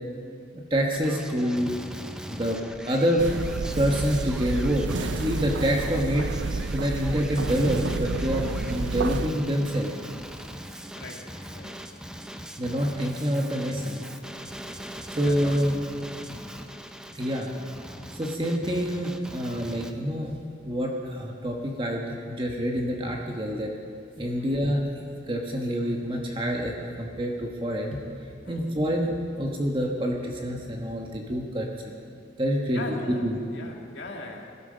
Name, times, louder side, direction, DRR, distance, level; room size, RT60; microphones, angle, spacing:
voice 1, 0.7-1.7 2.3-2.6 2.9-3.4 3.8-6.3 6.7-9.9 12.6-14.1 15.1-15.8 16.2-16.4 17.1-17.5 17.9-20.3 20.6-23.7 24.2-25.0 25.3-28.0 28.5-31.9 32.4-32.9 33.2-33.4, equal, 25° right, 0 dB, 1.3 m, -27 dB
Male speech man speaking, 0.9-19.9, equal, 5° right, 0.6 m, -41 dB
sound 1, 3.2-9.3, right 3 dB, 85° right, 0.5 m, -30 dB
voice 2, 10.9-11.8 15.2-15.6 24.4-24.5 28.4-28.7 32.7-34.6, left 2 dB, 80° left, 1 dB, 2.1 m, -40 dB
21.5 x 13.0 x 5.2 m, 2.5 s
head